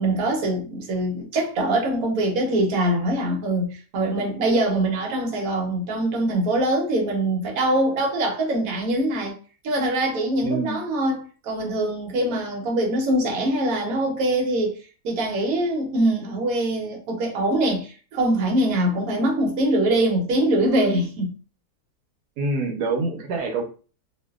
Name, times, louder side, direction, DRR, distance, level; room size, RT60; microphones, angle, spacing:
voice 1, 0.0-9.3 9.6-14.8 15.0-21.3, right 1 dB, 65° right, 1.2 m, -23 dB
voice 2, 10.4-10.9 22.4-23.6, right 3 dB, 90° right, 1.2 m, -26 dB
2.6 x 2.5 x 2.3 m
omnidirectional pair, 1.6 m